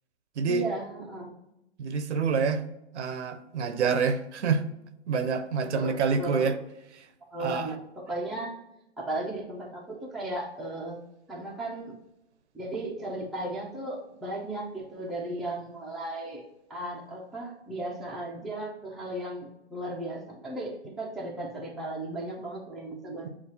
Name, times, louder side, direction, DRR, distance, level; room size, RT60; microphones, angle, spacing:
voice 1, 0.5-1.3 5.7-6.6 7.3-8.6 9.0-11.0 11.3-11.9 12.5-16.4 16.7-23.3, right 1 dB, ahead, 0.4 m, -35 dB
voice 2, 1.8-2.7 2.9-4.7 5.1-6.5 7.4-7.7, right 5 dB, 85° right, 0.7 m, -27 dB
7.2 x 2.4 x 2.8 m
hypercardioid pair, 130°, 34 cm